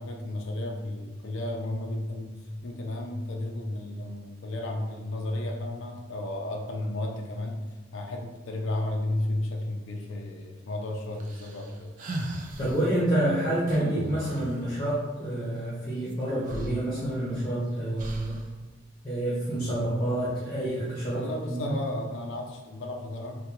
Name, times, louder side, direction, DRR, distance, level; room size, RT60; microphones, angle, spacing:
voice 1, 0.0-2.3 2.6-7.6 7.9-11.9 21.1-23.4, left 1 dB, 70° left, 1 dB, 0.4 m, -33 dB
sound 1, 11.2-12.8 13.7-14.6 16.1-16.2 16.4-17.4 18.0-18.5, right 1 dB, 40° right, 0.3 m, -36 dB
voice 2, 12.6-18.4 19.0-21.7, right 1 dB, 20° left, -9 dB, 0.8 m, -28 dB
3.5 x 2.2 x 2.9 m, 1.2 s
head